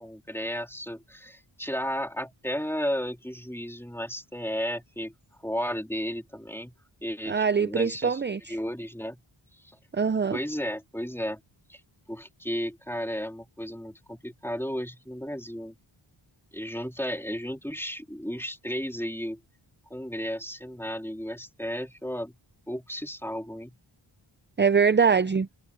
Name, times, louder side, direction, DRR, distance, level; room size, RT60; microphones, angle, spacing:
voice 1, 0.0-5.1 5.4-6.7 7.0-8.2 8.5-9.2 9.6-9.8 10.3-11.4 11.7-11.8 12.1-15.7 16.5-19.4 19.9-22.4 22.7-23.7, equal, 5° left, 2.9 m, -33 dB
voice 2, 7.3-8.6 9.9-10.4 24.6-25.5, right 6 dB, 25° right, 0.4 m, -23 dB
wide cardioid pair, 55°, 50 cm